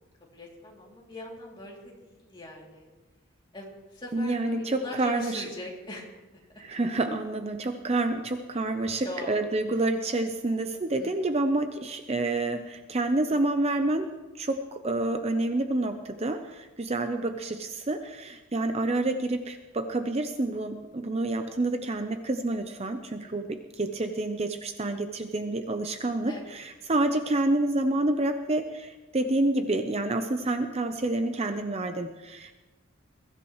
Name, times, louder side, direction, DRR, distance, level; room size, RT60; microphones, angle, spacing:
voice 1, 0.3-2.9 3.5-6.4 8.5-8.6 9.0-9.4 11.0-11.3 23.2-23.5 26.3-26.6, left 1 dB, 25° left, -3 dB, 2.9 m, -41 dB
voice 2, 4.1-5.4 6.6-32.6, right 2 dB, 30° right, 6 dB, 0.7 m, -28 dB
22.0 x 14.5 x 3.2 m, 1.2 s
head